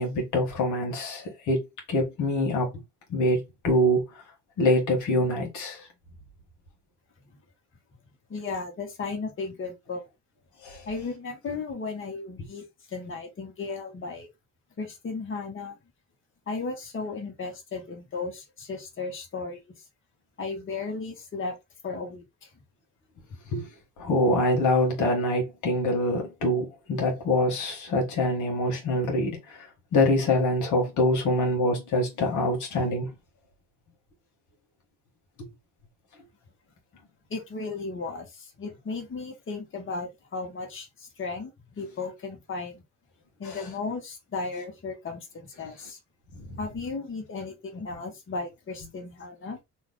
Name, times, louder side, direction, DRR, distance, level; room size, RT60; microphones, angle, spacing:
voice 1, 0.0-1.6 1.9-2.7 3.1-4.0 4.6-5.9 10.6-10.8 23.5-23.7 24.0-33.1 43.4-43.6 46.4-46.6, left 1 dB, 80° left, 1.3 m, -25 dB
voice 2, 8.3-10.0 10.9-14.3 14.8-15.8 16.5-19.6 20.4-21.5 21.8-22.2 37.3-42.8 43.4-46.0 46.6-49.6, left 4 dB, 40° left, 1.3 m, -35 dB
2.9 x 2.4 x 3.5 m
cardioid pair, 90°, 30 cm